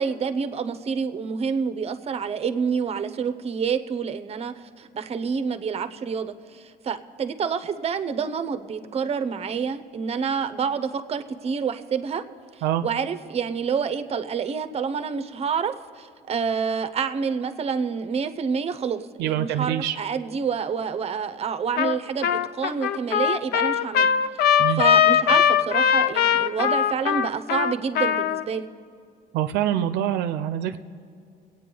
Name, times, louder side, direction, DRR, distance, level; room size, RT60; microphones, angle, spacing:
voice 1, 0.0-12.2 12.8-24.1 24.4-28.7, right 6 dB, 40° right, 10 dB, 0.7 m, -28 dB
voice 2, 19.2-20.0 24.6-24.8 29.3-30.8, right 11 dB, 85° right, 10 dB, 0.6 m, -25 dB
Trumpet, 21.8-22.0 22.2-28.4, left 8 dB, 70° left, 0.5 m, -20 dB
23.5 x 8.9 x 3.9 m, 2.4 s
cardioid pair, 110°, 17 cm